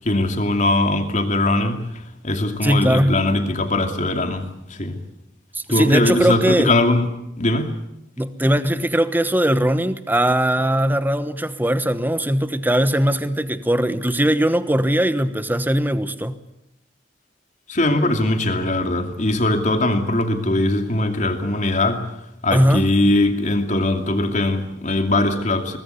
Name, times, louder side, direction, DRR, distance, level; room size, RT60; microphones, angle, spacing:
voice 1, 0.0-1.9 2.2-5.0 5.7-7.1 7.4-7.7 17.7-22.0 22.4-25.8, left 2 dB, 40° left, 6 dB, 2.7 m, -20 dB
voice 2, 2.6-3.2 5.5-6.7 8.2-16.4 22.5-22.9, right 1 dB, 10° right, 12 dB, 1.1 m, -20 dB
23.0 x 20.0 x 8.3 m, 0.84 s
head